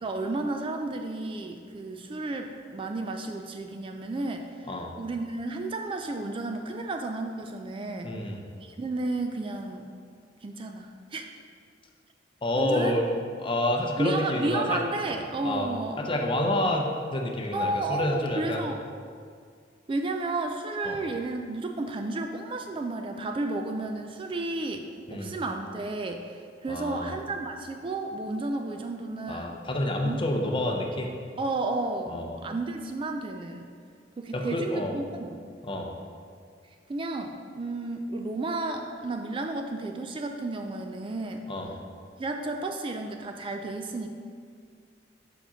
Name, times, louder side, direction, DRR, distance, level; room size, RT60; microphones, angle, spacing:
voice 1, 0.0-8.1 8.6-9.9 10.4-11.3 12.6-13.3 14.0-16.1 17.5-18.8 19.9-29.6 30.0-30.2 31.4-32.1 32.4-33.7 34.2-35.4 36.9-41.5 42.2-44.1, right 2 dB, 30° right, 4 dB, 0.3 m, -32 dB
voice 2, 8.0-8.4 12.4-13.0 13.4-14.8 15.4-15.7 16.0-18.6 20.8-21.0 25.1-25.3 26.7-27.1 29.3-31.1 32.1-32.4 34.3-35.0 35.6-35.9 41.5-41.7, left 1 dB, 30° left, 1 dB, 0.7 m, -28 dB
5.1 x 5.1 x 5.6 m, 2.2 s
head